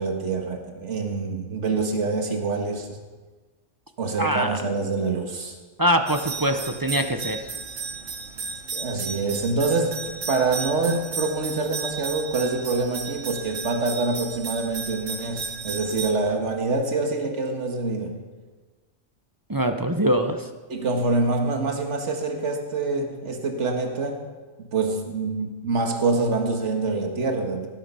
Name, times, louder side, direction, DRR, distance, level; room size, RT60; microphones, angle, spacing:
voice 1, 0.0-3.0 4.0-5.6 8.7-10.0 10.3-18.1 20.7-24.2 24.6-27.7, right 3 dB, 70° right, 3 dB, 1.9 m, -26 dB
voice 2, 4.2-4.5 5.8-7.4 19.5-20.4, right 1 dB, 20° right, 6 dB, 0.7 m, -23 dB
sound 1, 6.1-16.1, right 4 dB, 85° right, 1.5 m, -34 dB
17.5 x 10.5 x 5.5 m, 1.4 s
omnidirectional pair, 1.3 m